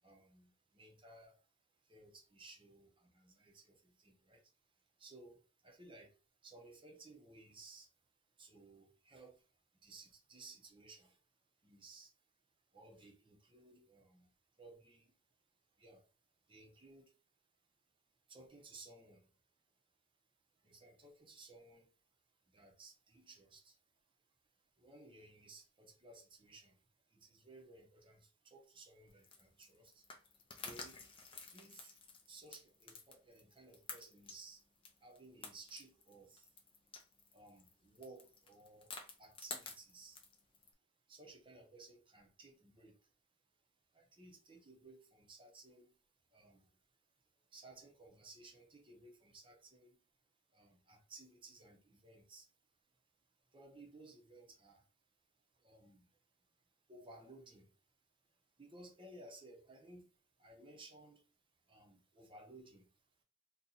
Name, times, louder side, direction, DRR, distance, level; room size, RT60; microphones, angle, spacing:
voice 1, 0.0-11.2 11.6-12.2 12.7-15.2 15.7-17.2 17.6-17.7 18.3-19.4 20.5-22.0 22.4-30.1 30.5-31.1 31.5-36.6 37.3-40.2 41.1-43.1 43.9-46.0 46.3-50.0 50.5-52.5 52.9-53.0 53.4-54.9 55.5-61.3 61.6-63.2, right 2 dB, 25° right, 0.8 m, -59 dB
sound 1, 29.1-40.7, left 4 dB, 25° left, 0.5 m, -52 dB
2.8 x 2.4 x 3.9 m
head